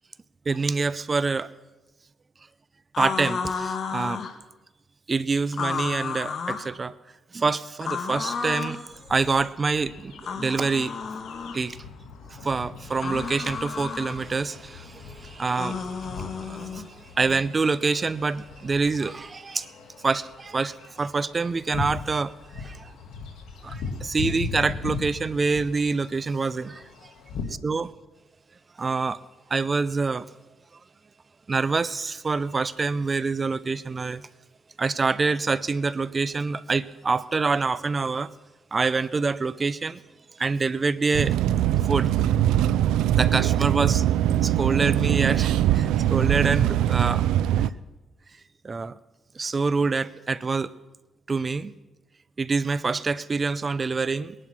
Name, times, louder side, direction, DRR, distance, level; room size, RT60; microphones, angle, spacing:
voice 1, 0.5-1.5 3.0-4.2 5.1-6.9 7.3-10.9 11.5-11.8 12.3-19.7 20.0-22.9 23.6-26.8 27.6-27.9 28.8-29.2 29.5-30.3 31.5-34.2 34.8-38.3 38.7-40.0 40.4-41.4 41.9-42.1 43.1-44.0 44.4-47.2 47.6-47.7 48.6-49.0 49.3-50.7 51.3-51.7 52.4-54.4, right 4 dB, 30° right, 18 dB, 0.6 m, -26 dB
sound 1, 2.9-4.3 5.5-6.7 7.8-8.8 10.2-11.6 12.9-14.1 15.5-16.8, left 5 dB, 50° left, 1.6 m, -32 dB
sound 2, 8.9-27.4, left 4 dB, 75° left, 2.5 m, -39 dB
sound 3, 41.1-47.7, right 12 dB, 90° right, 0.4 m, -22 dB
20.5 x 11.0 x 6.2 m, 1.1 s
cardioid pair, 90°, 0 cm